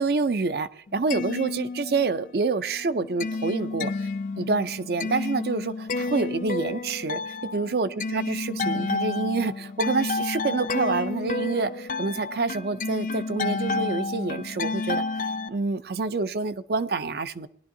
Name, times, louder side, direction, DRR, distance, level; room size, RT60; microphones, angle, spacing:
voice 1, 0.0-4.1 4.4-17.5, right 4 dB, 60° right, 13 dB, 0.5 m, -27 dB
sound 1, 0.9-2.3 2.7-15.5, left 3 dB, 45° left, 0.4 m, -30 dB
19.5 x 11.5 x 2.7 m, 0.73 s
head